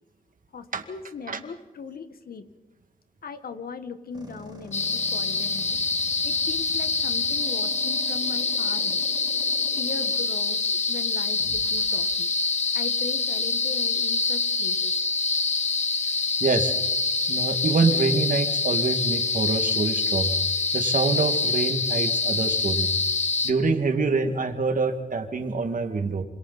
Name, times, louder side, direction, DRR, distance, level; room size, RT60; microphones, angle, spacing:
voice 1, 0.5-2.5 3.2-5.8 6.2-9.0 9.8-12.3 12.7-14.9, left 5 dB, 80° left, 10 dB, 1.6 m, -39 dB
sound 1, 4.1-12.1, right 1 dB, 25° right, 5.1 m, -46 dB
sound 2, 4.7-23.5, left 4 dB, 45° left, 1.9 m, -25 dB
voice 2, 16.4-16.8 17.3-20.3 20.7-22.9 23.4-26.2, right 4 dB, 60° right, 6 dB, 2.2 m, -25 dB
27.0 x 27.0 x 4.3 m, 1.1 s
cardioid pair, 75°, 15 cm